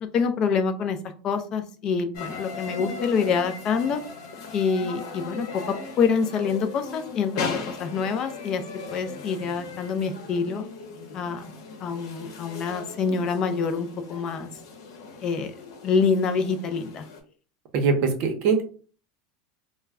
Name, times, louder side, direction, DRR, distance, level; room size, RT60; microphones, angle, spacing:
voice 1, 0.0-1.0 1.2-4.0 4.5-8.6 8.9-10.6 11.1-11.4 11.8-14.5 15.2-15.5 15.8-17.0, left 5 dB, 30° left, 9 dB, 0.3 m, -26 dB
sound 1, 2.1-17.2, left 4 dB, 80° left, 0.8 m, -38 dB
voice 2, 17.7-18.6, right 5 dB, 45° right, 4 dB, 0.6 m, -22 dB
2.2 x 2.0 x 3.4 m, 0.40 s
supercardioid pair, 165°, 2 cm